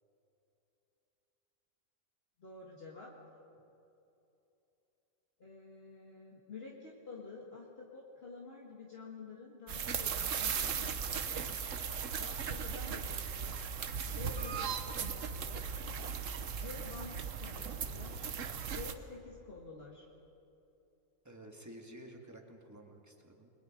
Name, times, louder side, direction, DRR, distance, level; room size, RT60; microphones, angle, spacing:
voice 1, 2.4-3.1 5.4-11.6 12.2-13.7 14.1-15.8 16.5-18.3 18.7-20.1, left 4 dB, 45° left, -3 dB, 2.1 m, -50 dB
sound 1, 9.7-18.9, right 6 dB, 70° right, 1.3 m, -37 dB
voice 2, 21.2-23.5, right 1 dB, 10° right, 1 dB, 2.0 m, -52 dB
30.0 x 21.5 x 5.2 m, 2.9 s
omnidirectional pair, 1.4 m